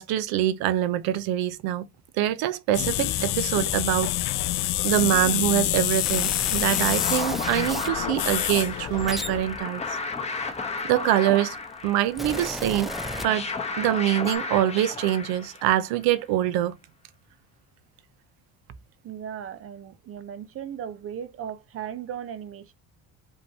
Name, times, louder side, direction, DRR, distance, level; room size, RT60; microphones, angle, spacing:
voice 1, 0.0-1.9 2.2-4.1 4.8-10.0 10.8-11.6 11.8-12.9 13.2-13.4 13.8-16.8, right 13 dB, 85° right, 0.8 m, -24 dB
sound 1, 2.7-9.4, left 16 dB, 60° left, 0.5 m, -27 dB
sound 2, 6.0-8.0 8.7-11.0 11.8-13.8 14.0-14.4, equal, ahead, 0.7 m, -35 dB
sound 3, 6.5-15.9, left 4 dB, 20° left, 1.1 m, -33 dB
voice 2, 19.0-22.7, right 9 dB, 40° right, 0.6 m, -37 dB
5.2 x 3.0 x 2.8 m
cardioid pair, 120°, 36 cm